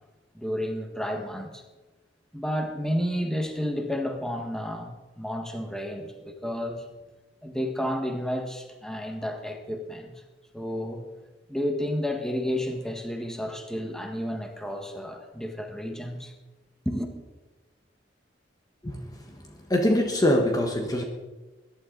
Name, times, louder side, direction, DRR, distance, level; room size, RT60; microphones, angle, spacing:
voice 1, 0.3-1.6 2.3-6.8 7.4-10.1 10.5-11.1 11.5-16.3 16.8-17.1, equal, 5° left, 3 dB, 1.6 m, -31 dB
voice 2, 19.7-21.0, left 1 dB, 20° left, 2 dB, 1.3 m, -23 dB
21.5 x 11.5 x 4.0 m, 1.2 s
head